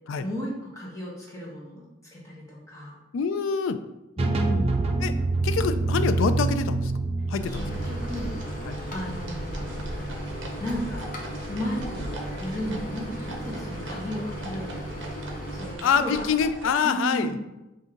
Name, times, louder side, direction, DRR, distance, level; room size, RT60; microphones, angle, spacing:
voice 1, 0.2-3.0 4.2-4.9 7.5-8.3 8.9-10.0 10.6-11.1 11.5-14.7 15.5-16.2 16.8-17.3, equal, 15° left, -6 dB, 1.2 m, -34 dB
voice 2, 3.1-3.8 5.0-5.1 5.4-6.9 7.3-7.6 8.7-8.8 15.8-17.4, left 6 dB, 70° left, 10 dB, 0.3 m, -25 dB
sound 1, 4.2-9.9, right 3 dB, 30° right, 0.3 m, -27 dB
sound 2, 7.3-16.7, right 1 dB, 60° right, 0.7 m, -39 dB
Microwave oven, 7.5-15.8, equal, 40° left, 0.7 m, -36 dB
5.0 x 2.7 x 3.7 m, 0.97 s
head